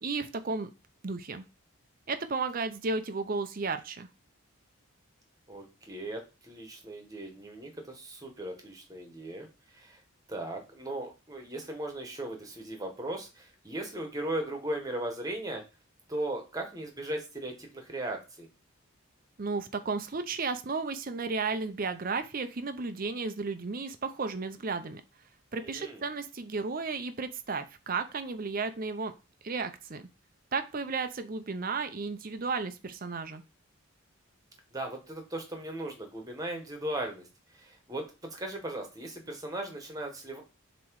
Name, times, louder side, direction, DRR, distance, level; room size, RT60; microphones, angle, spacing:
voice 1, 0.0-0.7 1.0-1.4 2.1-4.1 19.4-25.0 25.5-29.1 29.4-30.1 30.5-33.4, right 4 dB, 40° right, 9 dB, 0.6 m, -33 dB
voice 2, 5.5-10.0 10.3-15.6 16.1-18.5 25.6-26.0 34.7-37.3 37.5-40.4, right 1 dB, 15° right, 3 dB, 1.3 m, -37 dB
7.2 x 3.0 x 4.7 m, 0.29 s
head